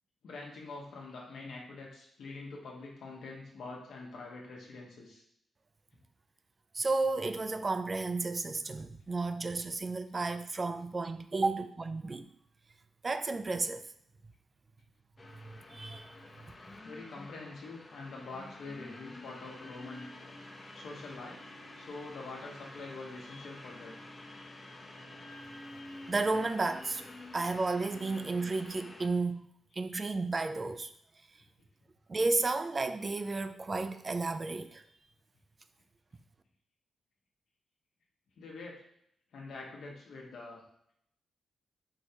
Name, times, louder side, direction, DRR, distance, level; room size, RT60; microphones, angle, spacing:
voice 1, 0.2-5.2 16.8-20.1 20.7-21.4 21.8-24.0 38.4-38.8 39.3-40.6, left 3 dB, 75° left, -2 dB, 1.1 m, -45 dB
voice 2, 6.7-12.3 13.0-13.8 15.4-16.1 26.1-27.0 27.3-29.4 29.8-30.9 32.1-34.8, right 3 dB, 40° right, 10 dB, 0.4 m, -32 dB
sound 1, 15.2-29.1, left 2 dB, 35° left, 0.7 m, -49 dB
4.5 x 3.3 x 2.8 m, 0.71 s
supercardioid pair, 55°, 0 cm